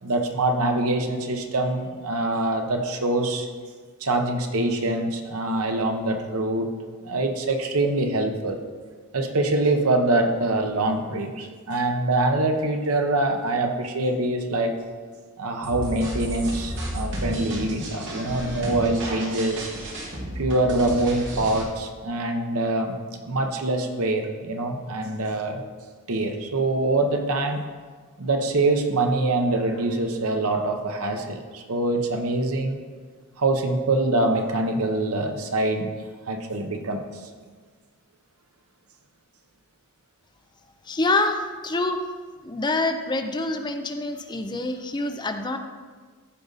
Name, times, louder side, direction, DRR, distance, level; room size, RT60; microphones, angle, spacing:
voice 1, 0.0-3.5 4.0-6.7 7.0-8.6 9.1-14.8 15.4-19.7 20.4-23.0 23.2-25.6 26.1-27.6 28.2-32.8 33.4-35.9 36.3-37.0, right 2 dB, 75° right, 5 dB, 1.0 m, -24 dB
sound 1, 15.6-21.6, equal, 55° right, 2.1 m, -32 dB
voice 2, 40.9-42.0 42.4-45.6, left 2 dB, 20° left, 6 dB, 0.5 m, -26 dB
14.0 x 5.2 x 4.0 m, 1.5 s
head